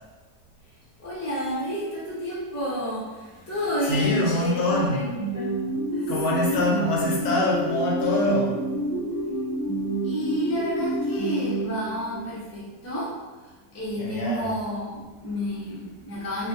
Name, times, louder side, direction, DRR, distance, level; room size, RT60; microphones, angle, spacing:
voice 1, 1.0-5.6 5.9-6.7 10.0-16.5, equal, 20° left, -8 dB, 0.4 m, -30 dB
voice 2, 3.8-5.1 6.1-8.6 14.0-14.5, left 2 dB, 80° left, -3 dB, 1.3 m, -25 dB
sound 1, 5.2-12.3, right 1 dB, 85° right, 1.2 m, -28 dB
3.3 x 2.1 x 2.7 m, 1.3 s
omnidirectional pair, 1.8 m